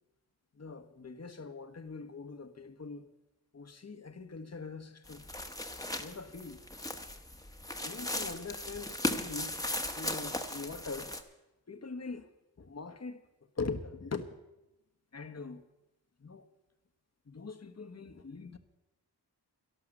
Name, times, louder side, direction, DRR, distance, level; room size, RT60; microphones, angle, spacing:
voice 1, 0.5-3.1 3.5-5.3 6.0-6.6 7.7-9.6 9.9-11.2 11.7-12.3 12.6-14.4 15.1-15.7 16.2-16.5 17.2-18.6, left 4 dB, 40° left, 1.2 m, -42 dB
sound 1, 5.1-11.2, left 1 dB, 10° left, 1.2 m, -37 dB
12.5 x 12.0 x 6.6 m
cardioid pair, 60°, 41 cm